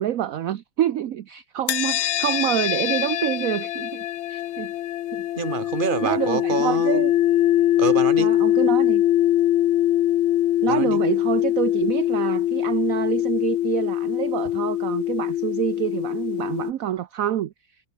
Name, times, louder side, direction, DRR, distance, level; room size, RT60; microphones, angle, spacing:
voice 1, 0.0-4.7 5.1-5.2 6.0-7.1 8.2-9.0 10.6-17.5, right 11 dB, 60° right, 0.9 m, -27 dB
sound 1, 1.7-16.7, left 13 dB, 85° left, 1.6 m, -22 dB
voice 2, 5.4-7.0 7.8-8.4 10.7-11.0, right 6 dB, 30° right, 1.4 m, -27 dB
omnidirectional pair, 2.1 m